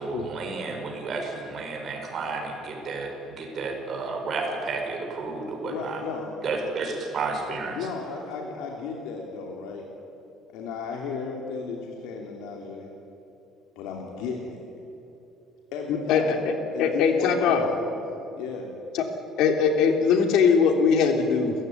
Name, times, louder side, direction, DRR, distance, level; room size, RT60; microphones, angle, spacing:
voice 1, 0.0-6.0 6.4-7.8, right 3 dB, 35° right, 2 dB, 4.9 m, -31 dB
voice 2, 5.6-6.3 7.7-9.8 10.5-12.9 13.7-14.6 15.7-16.4 16.7-18.0 18.3-18.7, left 5 dB, 85° left, 0 dB, 3.2 m, -34 dB
voice 3, 16.1-16.5 16.8-17.6 18.9-19.0 19.4-21.5, left 6 dB, 70° left, 4 dB, 3.1 m, -21 dB
29.0 x 15.5 x 9.5 m, 2.9 s
cardioid pair, 165°, 0 cm